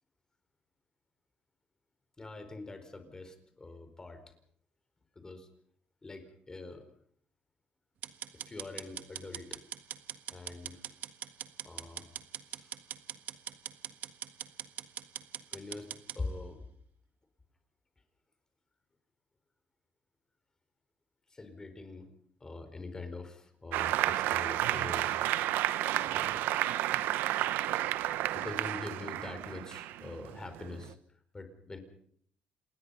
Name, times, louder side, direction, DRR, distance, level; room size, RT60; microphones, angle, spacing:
voice 1, 2.2-4.3 5.1-5.5 6.0-6.9 8.3-9.6 10.3-10.8 11.6-12.1 12.5-12.8 15.5-16.6 21.3-22.1 22.4-25.8 26.0-26.5 28.3-31.8, left 3 dB, 20° left, 8 dB, 4.6 m, -44 dB
sound 1, 8.0-16.2, right 10 dB, 65° right, 1.5 m, -42 dB
Applause, 23.7-30.9, right 14 dB, 85° right, 1.0 m, -31 dB
27.5 x 20.5 x 5.7 m, 0.64 s
cardioid pair, 110°, 3 cm